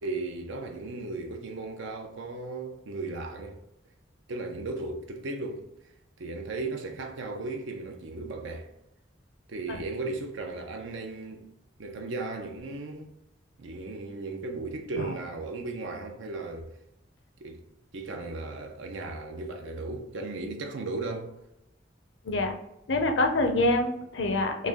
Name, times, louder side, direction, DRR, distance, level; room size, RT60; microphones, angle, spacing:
voice 1, 0.0-3.6 4.3-5.7 6.2-8.7 9.5-11.5 11.8-13.1 13.6-16.7 17.4-17.6 17.9-21.3, right 3 dB, 85° right, 0.6 m, -36 dB
voice 2, 22.9-24.7, left 2 dB, 70° left, 0.6 m, -26 dB
3.2 x 2.5 x 3.6 m
head